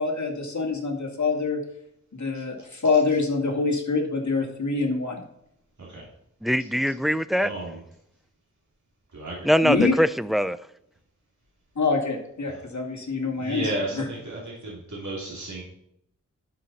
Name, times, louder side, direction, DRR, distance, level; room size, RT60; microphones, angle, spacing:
voice 1, 0.0-1.6 2.1-5.2 9.6-9.9 11.8-13.6 14.0-14.1, left 4 dB, 65° left, 2.2 m, -25 dB
voice 2, 6.4-7.5 9.4-10.6, equal, ahead, 0.4 m, -22 dB
voice 3, 7.4-7.8 9.1-9.9 12.5-12.7 13.4-15.6, right 2 dB, 65° right, 2.8 m, -34 dB
11.5 x 5.9 x 4.1 m
wide cardioid pair, 60°, 31 cm